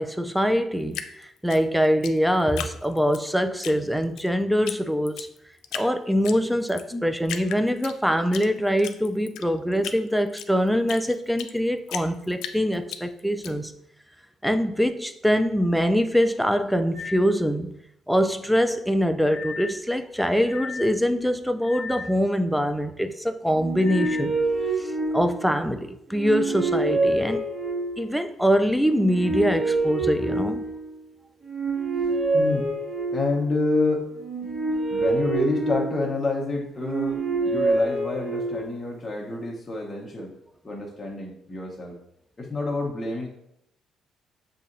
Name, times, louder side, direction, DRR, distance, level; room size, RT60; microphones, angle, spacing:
voice 1, 0.0-5.3 5.7-13.7 14.4-17.7 18.1-24.4 24.8-27.4 28.0-30.7, equal, ahead, 8 dB, 0.3 m, -24 dB
Drip, 0.9-3.2 3.6-4.3 4.7-4.8 5.1-5.9 6.2-6.9 7.2-8.5 8.8-11.6 11.9-13.5, left 9 dB, 85° left, 0.3 m, -36 dB
sound 1, 16.9-17.3 19.3-19.8 20.4-21.0 21.6-22.2 23.8-24.2, left 5 dB, 70° right, 0.8 m, -36 dB
sound 2, 23.5-25.6 26.1-28.1 28.8-31.0 31.4-33.5 34.2-36.3 36.8-38.8, right 2 dB, 55° right, 1.5 m, -26 dB
voice 2, 32.3-32.7 33.1-34.1 34.4-34.5 34.9-37.2 37.4-40.3 40.6-41.9 42.4-43.3, left 2 dB, 25° left, -3 dB, 0.9 m, -28 dB
6.9 x 2.8 x 2.6 m, 0.79 s
cardioid pair, 100°, 0 cm